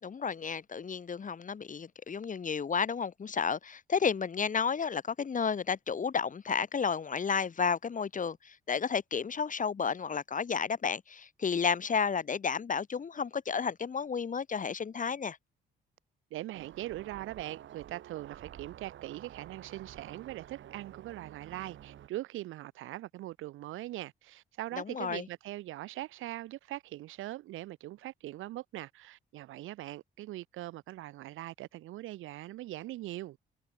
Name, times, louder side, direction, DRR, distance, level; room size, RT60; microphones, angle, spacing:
voice 1, 0.0-15.4 24.8-25.3, left 6 dB, 40° left, 3.0 m, -32 dB
voice 2, 16.3-33.4, right 16 dB, 90° right, 5.1 m, -41 dB
sound 1, 16.5-22.1, right 11 dB, 70° right, 6.9 m, -50 dB
cardioid pair, 90°, 20 cm